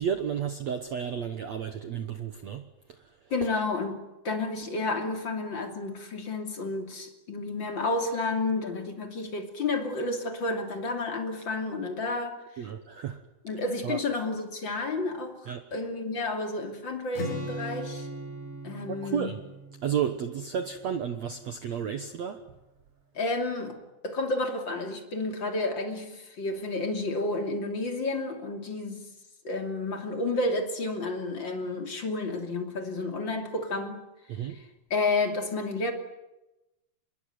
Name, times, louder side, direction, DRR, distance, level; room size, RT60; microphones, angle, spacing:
voice 1, 0.0-2.6 12.6-13.2 13.8-14.0 15.5-15.6 18.9-19.4 19.8-22.4 34.3-34.6, right 8 dB, 75° right, 8 dB, 1.6 m, -32 dB
voice 2, 3.3-12.7 13.4-18.1 18.6-19.4 23.1-23.8 24.0-29.1 29.4-34.0 34.5-35.9, left 2 dB, 30° left, 5 dB, 2.9 m, -31 dB
Strum, 17.1-21.3, equal, 70° left, 7.9 m, -39 dB
26.5 x 22.5 x 9.5 m, 0.97 s
omnidirectional pair, 5.0 m